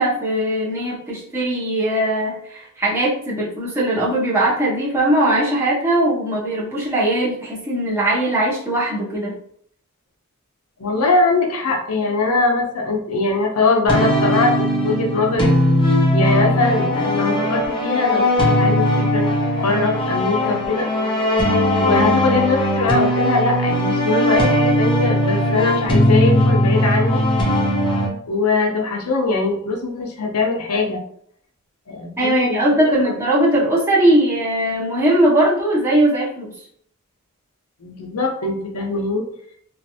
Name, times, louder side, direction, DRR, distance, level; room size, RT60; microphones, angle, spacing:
voice 1, 0.0-9.3 32.2-36.5, right 1 dB, 10° right, -6 dB, 0.9 m, -19 dB
voice 2, 10.8-15.5 16.1-19.3 19.6-20.9 21.8-27.2 28.3-31.0 31.9-32.6 37.8-39.2, left 3 dB, 90° left, 2 dB, 0.7 m, -21 dB
sound 1, 13.9-28.1, left 1 dB, 25° left, 0.8 m, -18 dB
3.1 x 2.5 x 2.7 m, 0.65 s
head